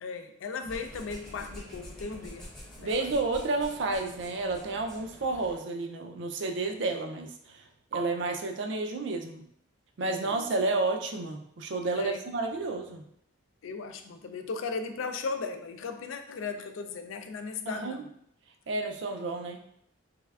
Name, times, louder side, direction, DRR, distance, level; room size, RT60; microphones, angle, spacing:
voice 1, 0.0-2.5 2.8-3.1 10.0-10.3 12.0-12.2 13.6-18.1, left 4 dB, 75° left, 7 dB, 0.4 m, -37 dB
sound 1, 0.6-5.6, equal, ahead, 0.7 m, -47 dB
voice 2, 2.8-9.4 10.0-13.0 17.7-18.0 18.7-19.7, right 3 dB, 60° right, 4 dB, 0.4 m, -31 dB
3.3 x 3.3 x 2.3 m, 0.71 s
head